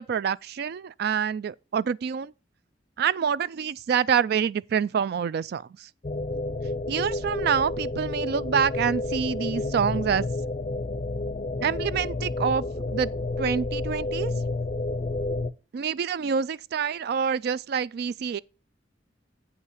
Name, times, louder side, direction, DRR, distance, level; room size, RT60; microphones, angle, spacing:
voice 1, 0.0-2.3 3.0-5.9 6.9-10.3 11.6-13.1 13.4-14.3 15.7-18.4, right 7 dB, 55° right, 0.3 m, -27 dB
sound 1, 6.0-15.5, left 2 dB, 35° left, 0.5 m, -30 dB
8.4 x 5.6 x 4.8 m
head